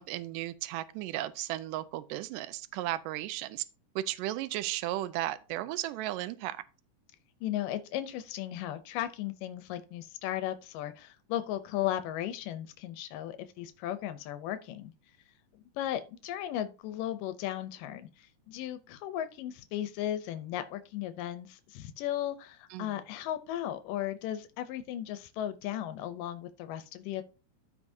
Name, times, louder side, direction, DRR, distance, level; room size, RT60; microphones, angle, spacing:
voice 1, 0.0-3.6 4.0-6.6 22.7-22.9, right 14 dB, 85° right, 2.2 m, -35 dB
voice 2, 7.4-14.9 15.8-27.2, left 12 dB, 85° left, 2.3 m, -36 dB
14.0 x 5.0 x 2.7 m
omnidirectional pair, 3.8 m